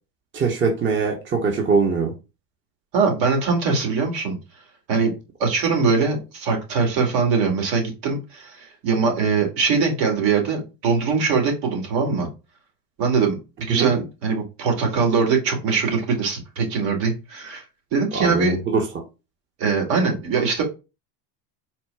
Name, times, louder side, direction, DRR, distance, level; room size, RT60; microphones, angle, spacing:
voice 1, 0.3-2.1 13.7-13.9 18.1-18.8, right 5 dB, 25° right, 0.9 m, -22 dB
voice 2, 2.9-4.4 4.9-5.1 5.4-12.3 13.0-17.6 17.9-18.6 19.6-20.6, right 5 dB, 65° right, 2.1 m, -22 dB
4.4 x 2.1 x 4.6 m
supercardioid pair, 105°, 48 cm